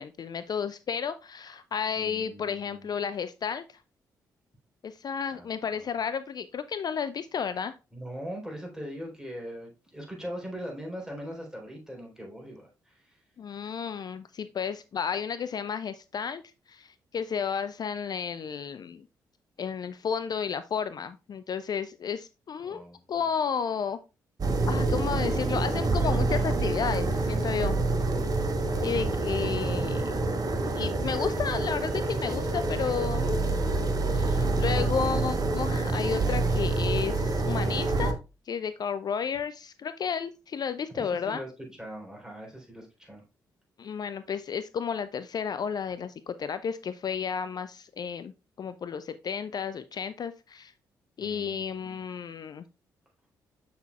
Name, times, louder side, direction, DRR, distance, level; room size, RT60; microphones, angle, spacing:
voice 1, 0.0-3.8 4.8-7.8 13.4-16.4 16.7-19.1 19.6-22.8 23.1-24.0 24.7-27.8 28.8-30.3 30.7-33.4 34.1-38.2 38.5-41.4 43.8-48.3 48.6-50.7 51.2-52.6, left 7 dB, 45° left, 12 dB, 0.4 m, -32 dB
voice 2, 2.0-2.9 5.3-5.9 7.9-13.2 22.6-23.0 28.7-29.2 40.9-43.2 51.2-51.9, equal, 5° right, -1 dB, 3.9 m, -41 dB
sound 1, 24.4-38.1, right 2 dB, 40° right, 1.1 m, -27 dB
7.1 x 5.9 x 2.4 m, 0.29 s
hypercardioid pair, 40°, 10 cm